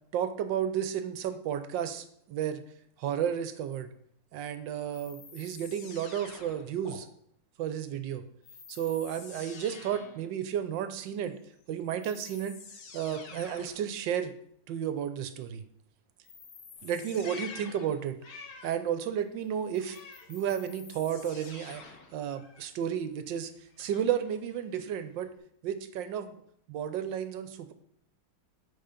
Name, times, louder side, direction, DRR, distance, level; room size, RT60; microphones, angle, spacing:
voice 1, 0.1-2.6 3.0-3.9 4.3-7.1 7.6-8.2 8.7-11.4 11.7-12.6 12.9-14.3 14.7-15.6 16.8-18.2 18.6-20.0 20.3-21.8 22.1-23.5 23.8-25.3 25.6-26.3 26.7-27.7, right 9 dB, 75° right, 10 dB, 1.2 m, -32 dB
sound 1, 4.9-7.0 8.4-10.3 11.5-11.6 12.0-13.9 16.2-18.0 19.7-22.2, left 5 dB, 65° left, 1.6 m, -49 dB
Meow, 16.8-18.9 19.2-20.9 21.2-25.4, left 6 dB, 90° left, 2.0 m, -50 dB
8.6 x 3.9 x 5.7 m, 0.70 s
omnidirectional pair, 2.2 m